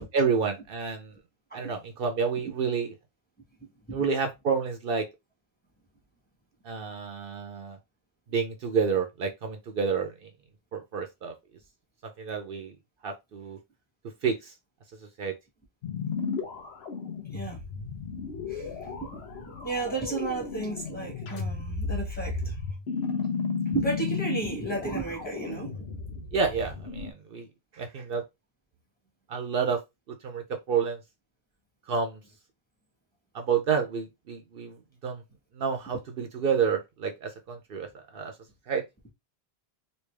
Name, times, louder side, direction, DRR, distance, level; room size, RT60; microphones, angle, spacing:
voice 1, 0.1-1.1 1.5-2.9 3.9-5.1 6.6-7.8 8.3-10.3 10.7-11.3 12.2-12.8 13.0-13.6 14.2-14.5 15.2-15.3 26.3-27.5 27.7-28.2 29.3-29.8 30.2-31.0 31.9-32.2 33.3-34.8 35.0-35.2 35.5-38.3 38.7-38.8, right 6 dB, 65° right, 0.8 m, -29 dB
sound 1, 15.8-27.1, left 5 dB, 90° left, 1.0 m, -34 dB
voice 2, 18.5-22.6 23.7-25.9, right 3 dB, 10° left, 1.3 m, -33 dB
3.2 x 2.7 x 3.2 m
omnidirectional pair, 1.0 m